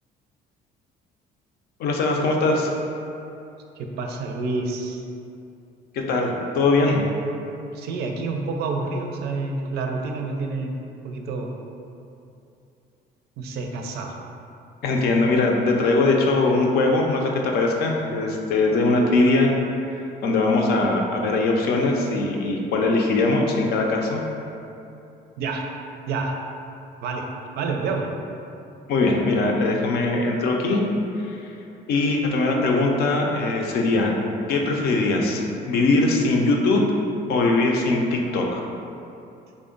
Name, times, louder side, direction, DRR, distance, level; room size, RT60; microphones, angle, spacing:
voice 1, 1.8-2.7 5.9-7.1 14.8-19.5 19.9-24.2 28.9-30.8 31.2-31.4 31.9-34.1 34.5-36.8 37.3-38.6, left 2 dB, 65° left, 1 dB, 0.5 m, -21 dB
voice 2, 3.8-5.0 7.7-10.7 11.0-11.5 13.4-14.2 25.4-25.6 26.1-26.4 27.0-27.3 27.6-28.1, right 3 dB, 70° right, 2 dB, 0.4 m, -28 dB
3.5 x 2.1 x 3.7 m, 2.7 s
cardioid pair, 110°, 17 cm